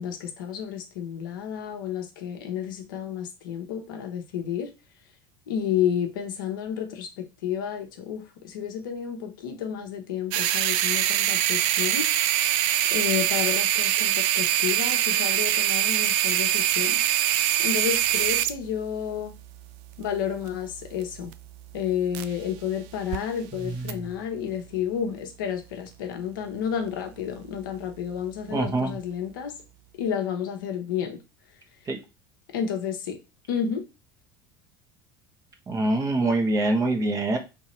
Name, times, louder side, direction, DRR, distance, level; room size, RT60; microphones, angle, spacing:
voice 1, 0.0-4.7 5.5-12.1 12.9-17.0 17.6-19.3 20.0-21.3 21.7-29.5 30.0-31.2 32.5-33.2 33.5-33.8, left 8 dB, 70° left, 1.0 m, -31 dB
sound 1, 10.3-22.6 22.9-23.2 23.9-24.0, right 12 dB, 60° right, 0.4 m, -24 dB
voice 2, 23.5-24.1 28.5-29.0 31.9-32.0 35.7-37.4, right 2 dB, 30° right, 1.1 m, -25 dB
3.5 x 2.8 x 4.4 m
hypercardioid pair, 75°, 11 cm